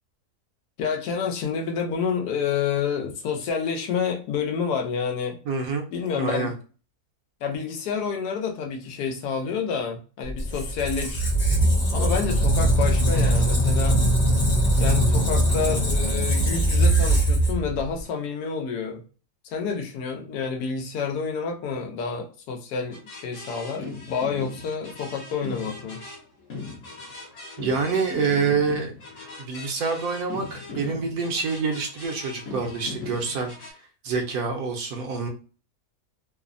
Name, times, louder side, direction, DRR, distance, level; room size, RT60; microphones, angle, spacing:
voice 1, 0.8-5.4 5.9-6.5 7.4-11.2 11.9-14.0 14.8-19.0 19.4-26.0 30.9-31.0, left 6 dB, 85° left, 3 dB, 1.2 m, -29 dB
voice 2, 5.5-5.9 6.2-6.5 27.6-28.9 29.4-33.5 34.0-35.3, right 4 dB, 75° right, 2 dB, 1.1 m, -26 dB
Squeak, 10.3-18.0, right 1 dB, 35° left, 0.8 m, -21 dB
sound 1, 22.9-33.7, left 3 dB, 55° left, 1.1 m, -39 dB
3.0 x 2.1 x 2.5 m, 0.37 s
omnidirectional pair, 1.7 m